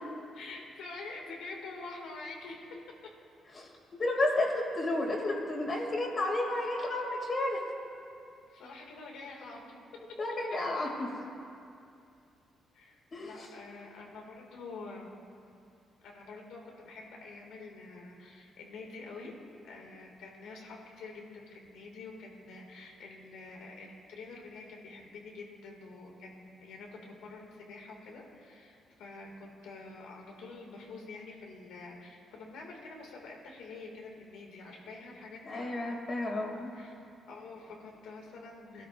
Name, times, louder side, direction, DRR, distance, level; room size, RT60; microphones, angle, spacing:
voice 1, 0.3-2.7 8.5-9.7 12.7-15.1 16.0-19.3 19.6-35.6 36.7-36.9 37.3-38.9, left 3 dB, 85° left, 0 dB, 2.2 m, -47 dB
voice 2, 3.6-7.6 10.2-11.1 13.1-13.5 35.4-36.7, left 2 dB, 40° left, 0 dB, 2.6 m, -32 dB
20.0 x 12.5 x 2.6 m, 2.5 s
cardioid pair, 90°, 0 cm